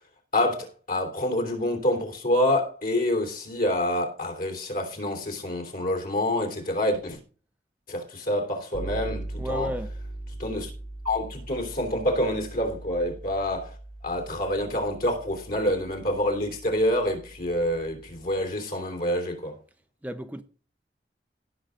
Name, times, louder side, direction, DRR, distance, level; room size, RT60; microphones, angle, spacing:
voice 1, 0.3-7.2 7.9-9.7 10.4-10.7 11.0-13.8 14.0-19.6, left 1 dB, 50° left, 3.1 m, -27 dB
Bass guitar, 8.7-18.4, right 1 dB, 85° left, 3.4 m, -40 dB
voice 2, 9.4-9.9 20.0-20.4, equal, 10° right, 0.6 m, -32 dB
17.0 x 6.3 x 3.8 m
head